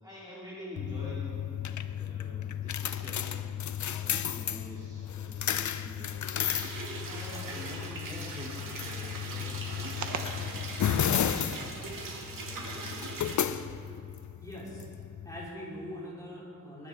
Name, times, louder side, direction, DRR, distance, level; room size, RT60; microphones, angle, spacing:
voice 1, 0.0-3.5 3.9-6.3 7.0-9.6 10.0-10.5 11.9-13.2, left 1 dB, 10° right, -8 dB, 2.4 m, -46 dB
sound 1, 0.8-15.5, left 9 dB, 60° left, 0.5 m, -34 dB
sound 2, 6.5-13.3, right 3 dB, 75° right, 2.0 m, -40 dB
sound 3, 7.1-12.6, right 5 dB, 60° right, 0.9 m, -46 dB
voice 2, 14.4-14.9 15.3-16.9, equal, 10° left, -6 dB, 3.6 m, -42 dB
21.0 x 10.5 x 3.5 m, 2.6 s
wide cardioid pair, 130°, 33 cm